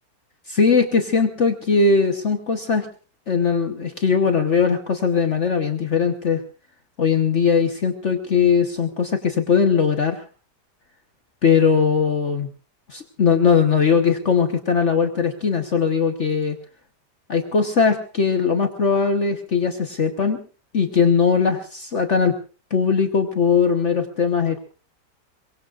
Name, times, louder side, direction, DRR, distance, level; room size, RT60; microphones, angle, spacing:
voice 1, 0.5-2.9 3.3-6.4 7.0-10.2 11.4-12.5 12.9-16.6 17.3-20.4 20.7-22.3 22.7-24.6, left 5 dB, 45° left, 6 dB, 1.4 m, -20 dB
23.0 x 23.0 x 2.5 m, 0.37 s
omnidirectional pair, 1.8 m